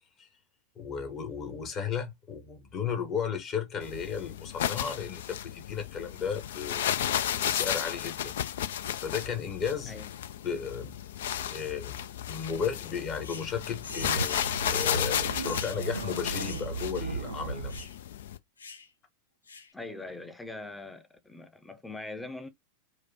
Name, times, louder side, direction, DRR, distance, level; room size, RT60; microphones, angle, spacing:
voice 1, 0.8-6.9 7.4-8.3 9.0-9.9 10.4-10.9 11.5-14.4 14.7-17.9, left 6 dB, 30° left, 1.0 m, -34 dB
sound 1, 3.8-18.4, left 10 dB, 60° left, 0.3 m, -33 dB
sound 2, 13.2-13.5 13.8-15.0 15.4-15.8 16.4-16.7 16.9-17.1 17.7-18.0 18.6-18.9 19.5-19.7, left 4 dB, 75° left, 0.9 m, -43 dB
sound 3, 13.6-17.9, right 3 dB, 80° right, 0.5 m, -36 dB
voice 2, 19.7-22.5, left 2 dB, 5° left, 0.7 m, -42 dB
4.6 x 2.2 x 2.8 m
figure-of-eight pair, 90°, 0 cm